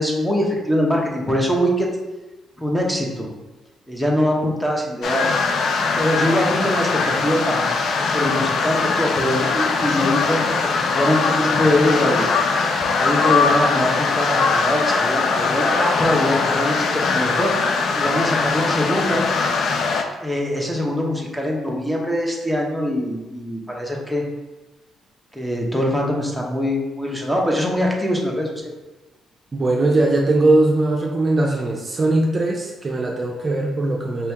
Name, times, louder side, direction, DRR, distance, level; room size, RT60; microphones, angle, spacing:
voice 1, 0.0-1.9 2.6-3.3 3.9-5.3 6.0-7.7 8.1-12.3 13.0-17.5 18.0-19.2 20.2-24.3 25.3-28.7, left 1 dB, 5° left, -1 dB, 0.9 m, -23 dB
sound 1, 5.0-20.0, left 4 dB, 65° left, 0.4 m, -21 dB
voice 2, 29.5-34.3, right 2 dB, 35° right, -1 dB, 0.6 m, -20 dB
4.3 x 2.7 x 3.5 m, 1.1 s
cardioid pair, 90°, 0 cm